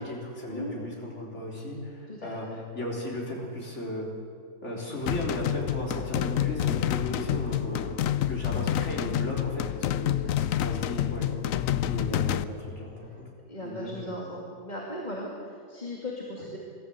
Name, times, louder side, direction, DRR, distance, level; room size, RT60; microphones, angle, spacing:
voice 1, 0.0-4.1 4.6-8.0 8.3-10.3 10.6-11.3 11.8-13.2 13.6-14.1, left 1 dB, 60° left, -2 dB, 4.0 m, -35 dB
voice 2, 2.1-2.6 8.4-8.7 10.2-10.6 11.3-11.4 13.5-16.6, left 1 dB, 35° left, -3 dB, 2.6 m, -38 dB
sound 1, 5.1-12.4, left 11 dB, 85° left, 1.1 m, -28 dB
22.5 x 14.5 x 8.4 m, 2.3 s
omnidirectional pair, 1.4 m